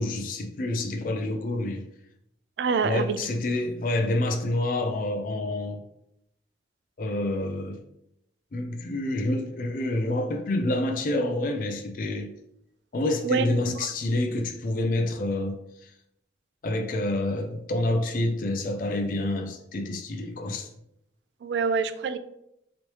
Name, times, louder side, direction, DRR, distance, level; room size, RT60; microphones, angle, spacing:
voice 1, 0.0-1.8 2.8-5.8 7.0-7.8 8.5-12.3 12.9-15.6 16.6-20.7, left 1 dB, 50° left, 0.4 m, -28 dB
voice 2, 2.6-3.2 13.2-13.9 21.4-22.2, right 5 dB, 75° right, 0.3 m, -26 dB
3.0 x 3.0 x 2.9 m
head